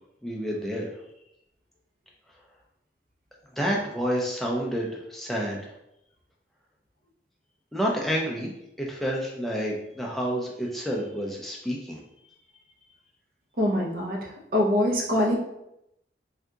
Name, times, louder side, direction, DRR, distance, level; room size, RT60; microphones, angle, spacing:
voice 1, 0.2-0.9 3.6-5.7 7.7-8.5 8.8-12.0, equal, ahead, -3 dB, 0.4 m, -29 dB
voice 2, 13.6-15.4, left 1 dB, 50° right, -2 dB, 0.7 m, -24 dB
3.6 x 2.7 x 2.3 m, 0.83 s
head